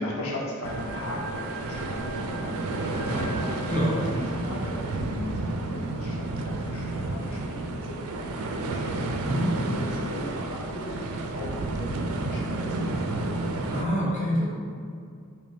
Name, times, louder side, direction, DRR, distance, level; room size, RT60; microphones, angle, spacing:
voice 1, 0.0-3.7 4.0-9.2 9.5-13.3, left 1 dB, 75° left, -3 dB, 0.8 m, -38 dB
sound 1, 0.6-5.1, equal, 10° left, 0.3 m, -42 dB
sound 2, 0.6-13.8, right 2 dB, 75° right, 0.3 m, -31 dB
voice 2, 13.7-14.5, equal, 35° left, -8 dB, 1.0 m, -25 dB
4.8 x 2.1 x 3.4 m, 2.3 s
head